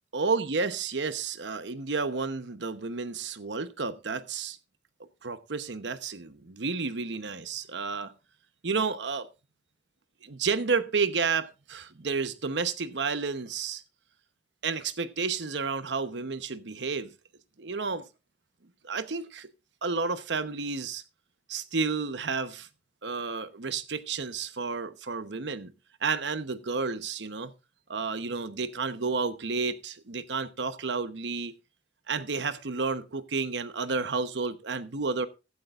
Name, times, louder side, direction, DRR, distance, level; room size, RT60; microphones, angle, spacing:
voice 1, 0.1-4.6 5.2-8.1 8.6-9.3 10.2-13.8 14.6-17.1 17.6-18.0 18.8-19.5 19.8-21.0 21.5-22.7 23.0-25.7 26.0-27.5 27.9-31.5 32.1-35.3, right 4 dB, 65° right, 0.9 m, -31 dB
15.0 x 11.5 x 2.5 m
head